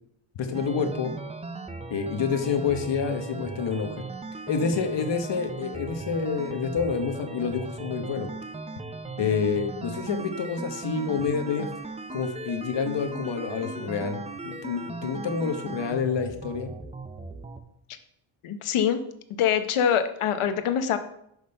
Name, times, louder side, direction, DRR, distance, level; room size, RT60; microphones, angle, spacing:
voice 1, 0.4-1.2 1.9-4.0 4.5-8.3 9.2-11.7 12.1-16.7, left 5 dB, 60° left, 6 dB, 1.1 m, -28 dB
sound 1, 0.5-17.6, right 3 dB, 15° right, 0.5 m, -38 dB
voice 2, 18.4-19.0 19.3-21.0, left 8 dB, 85° left, 9 dB, 0.9 m, -24 dB
6.4 x 5.2 x 5.4 m, 0.75 s
cardioid pair, 100°, 49 cm